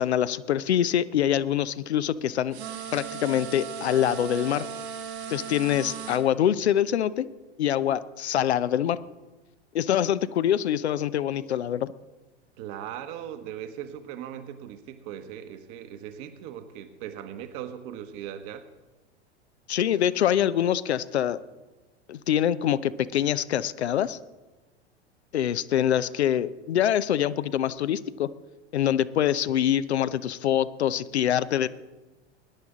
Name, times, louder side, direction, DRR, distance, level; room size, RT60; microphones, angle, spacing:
voice 1, 0.0-2.6 2.9-4.7 5.3-7.3 7.6-9.0 9.7-11.9 19.7-21.4 22.1-24.2 25.3-28.3 28.7-31.7, left 10 dB, 70° left, 15 dB, 0.7 m, -25 dB
sound 1, 2.5-6.2, right 7 dB, 65° right, 2.0 m, -37 dB
voice 2, 12.6-18.7, right 10 dB, 40° right, 9 dB, 1.2 m, -39 dB
21.0 x 10.5 x 3.7 m, 1.1 s
figure-of-eight pair, 90°, 35 cm